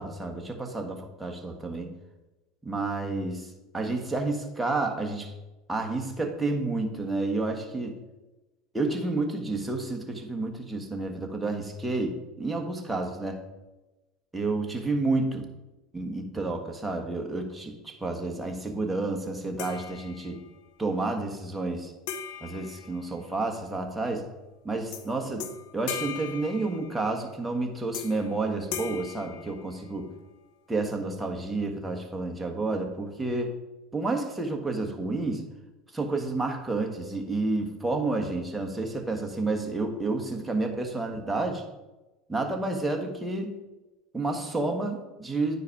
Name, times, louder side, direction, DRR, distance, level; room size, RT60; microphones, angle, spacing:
voice 1, 0.0-1.9 2.6-5.3 5.7-8.0 8.7-13.4 14.3-15.5 15.9-20.4 20.8-21.9 22.4-24.3 24.6-30.1 30.7-33.6 33.9-35.5 35.9-41.6 42.3-43.5 44.1-45.6, right 2 dB, 10° right, 2 dB, 1.3 m, -30 dB
sound 1, 19.6-20.6 22.1-23.6 24.9-25.1 25.4-27.2 27.9-28.3 28.7-30.1, left 8 dB, 70° left, 0.7 m, -39 dB
9.8 x 4.8 x 4.5 m, 1.1 s
supercardioid pair, 105°, 0 cm